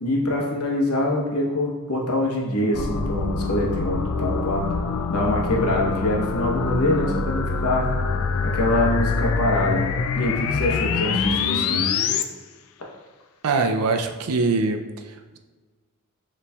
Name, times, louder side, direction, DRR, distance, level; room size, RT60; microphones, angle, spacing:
voice 1, 0.0-4.7 5.1-8.0 8.4-9.9 10.1-11.9, left 1 dB, 80° left, -1 dB, 0.9 m, -24 dB
sound 1, 2.7-12.2, left 4 dB, 65° left, 0.3 m, -25 dB
voice 2, 13.4-14.8, right 3 dB, 85° right, 5 dB, 0.4 m, -22 dB
6.7 x 3.1 x 2.3 m, 1.4 s
head